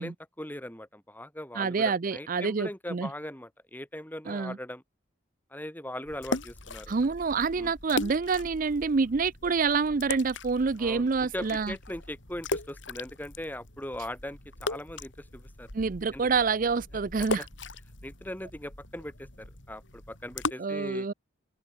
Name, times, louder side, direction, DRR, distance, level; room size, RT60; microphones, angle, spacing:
voice 1, 0.0-4.8 5.5-7.0 7.6-7.7 10.8-15.7 16.1-16.3 17.4-17.5 18.0-21.1, left 1 dB, 10° left, 3.8 m, -40 dB
voice 2, 1.6-3.1 4.3-4.6 6.9-11.7 15.7-17.5 20.6-21.1, right 4 dB, 45° right, 0.5 m, -27 dB
sound 1, 6.1-20.5, left 2 dB, 65° left, 4.6 m, -39 dB
open air
head